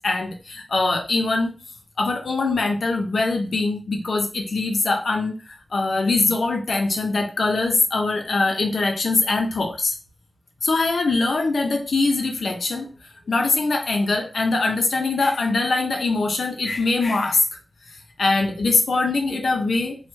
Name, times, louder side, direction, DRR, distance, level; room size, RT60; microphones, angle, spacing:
voice 1, 0.0-1.5 2.0-5.3 5.7-10.0 10.6-12.9 13.3-17.4 18.2-20.0, left 3 dB, 85° left, 3 dB, 0.5 m, -22 dB
3.1 x 2.2 x 3.1 m, 0.34 s
wide cardioid pair, 65°, 0 cm